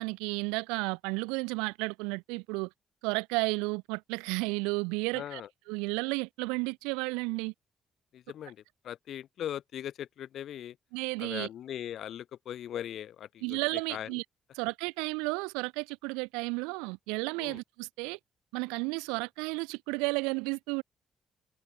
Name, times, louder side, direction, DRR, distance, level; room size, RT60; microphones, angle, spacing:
voice 1, 0.0-2.7 3.0-5.4 5.7-7.5 10.9-11.5 13.4-14.2 14.5-18.2 18.5-20.8, right 29 dB, 80° right, 1.0 m, -32 dB
voice 2, 5.1-5.5 8.1-8.6 8.8-10.7 11.2-13.6 13.9-14.1 17.4-17.6, left 10 dB, 65° left, 1.6 m, -39 dB
hypercardioid pair, 45°, 0 cm